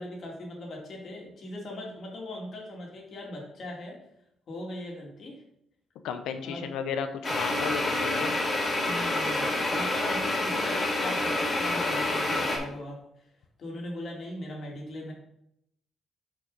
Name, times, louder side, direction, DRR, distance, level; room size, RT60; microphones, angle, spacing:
voice 1, 0.0-4.0 4.5-5.4 6.4-6.7 8.6-13.3 13.6-15.1, left 1 dB, 55° left, -2 dB, 2.4 m, -39 dB
voice 2, 6.0-8.4, left 7 dB, 85° left, 8 dB, 0.7 m, -33 dB
sound 1, 7.2-12.6, left 2 dB, 35° left, 2.2 m, -28 dB
6.3 x 5.4 x 4.0 m, 0.76 s
cardioid pair, 90°, 0 cm